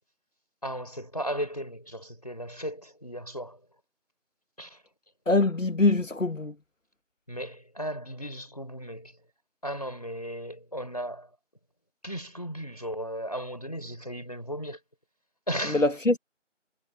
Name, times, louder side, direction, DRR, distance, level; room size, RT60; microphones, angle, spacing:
voice 1, 0.6-3.6 4.6-4.8 7.3-9.2 9.6-11.3 12.0-14.8 15.5-15.9, equal, 30° left, 3.9 m, -36 dB
voice 2, 5.3-6.5 15.7-16.2, left 2 dB, 90° left, 1.8 m, -23 dB
figure-of-eight pair, 180°, 37 cm